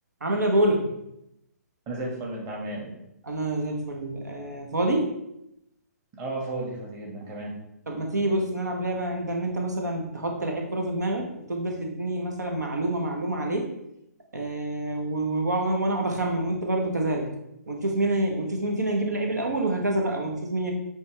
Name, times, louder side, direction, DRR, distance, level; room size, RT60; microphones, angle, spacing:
voice 1, 0.2-0.9 3.2-5.1 7.9-13.7 14.3-17.3 17.7-20.7, right 1 dB, 85° right, 2 dB, 1.2 m, -27 dB
voice 2, 1.9-2.9 6.1-7.5, right 2 dB, 25° right, -3 dB, 1.9 m, -33 dB
8.6 x 3.5 x 3.3 m, 0.82 s
hypercardioid pair, 140°, 9 cm